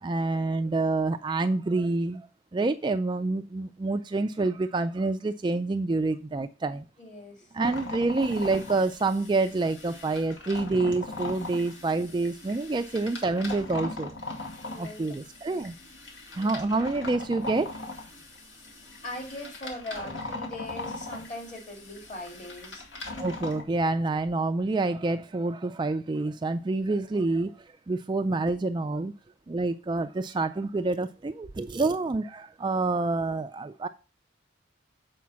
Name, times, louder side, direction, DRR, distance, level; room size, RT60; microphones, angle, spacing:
voice 1, 0.0-6.9 7.5-14.1 14.8-15.7 16.3-17.7 23.2-29.1 29.5-33.9, right 3 dB, 25° right, 0.3 m, -27 dB
voice 2, 7.0-7.6 14.6-15.7 19.0-22.9, left 1 dB, 40° left, 2.6 m, -40 dB
sound 1, 7.6-23.6, left 2 dB, 70° left, 2.1 m, -40 dB
7.3 x 5.1 x 5.8 m
head